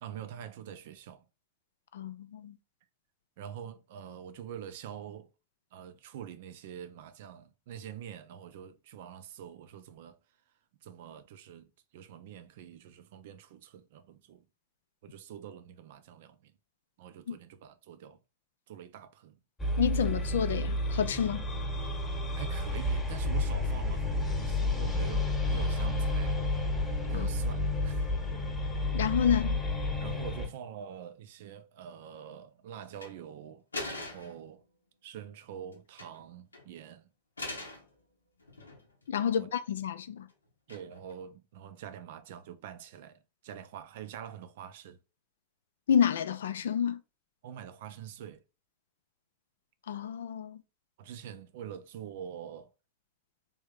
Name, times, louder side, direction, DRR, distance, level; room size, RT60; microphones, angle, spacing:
voice 1, 0.0-1.3 3.4-5.3 5.7-10.2 10.8-11.7 11.9-14.4 15.0-16.5 17.0-18.2 18.7-19.4 22.3-26.4 27.1-28.1 30.0-33.6 33.9-34.6 35.0-37.1 39.3-39.5 40.7-45.0 47.4-48.4 51.0-52.7, right 9 dB, 55° right, 0.4 m, -45 dB
voice 2, 1.9-2.5 17.3-17.4 19.8-21.5 27.1-27.3 28.9-29.6 39.1-40.3 45.9-47.0 49.9-50.6, left 8 dB, 65° left, 0.3 m, -29 dB
sound 1, 19.6-30.5, left 2 dB, 10° left, 1.0 m, -31 dB
sound 2, 32.9-33.1 33.7-34.4 35.7-36.2 36.5-36.7 37.4-37.9 38.4-39.1 40.7-41.1, left 2 dB, 80° left, 0.7 m, -41 dB
3.4 x 2.7 x 3.3 m
figure-of-eight pair, 90°, 0 cm